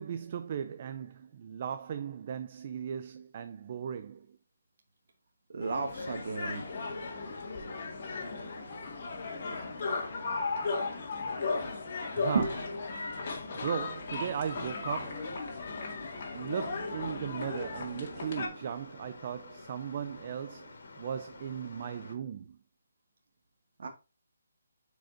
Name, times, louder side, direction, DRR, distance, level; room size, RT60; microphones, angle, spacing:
voice 1, 0.0-4.4 11.6-12.5 13.5-15.4 16.3-22.6, right 8 dB, 35° right, 0.4 m, -37 dB
voice 2, 5.5-6.6 12.3-12.5 23.8-23.9, right 4 dB, 55° right, 1.2 m, -32 dB
sound 1, 5.6-18.5, left 4 dB, 40° left, 2.0 m, -36 dB
sound 2, 5.8-22.2, left 3 dB, 65° left, 2.3 m, -50 dB
8.8 x 5.1 x 2.6 m
hypercardioid pair, 165°, 0 cm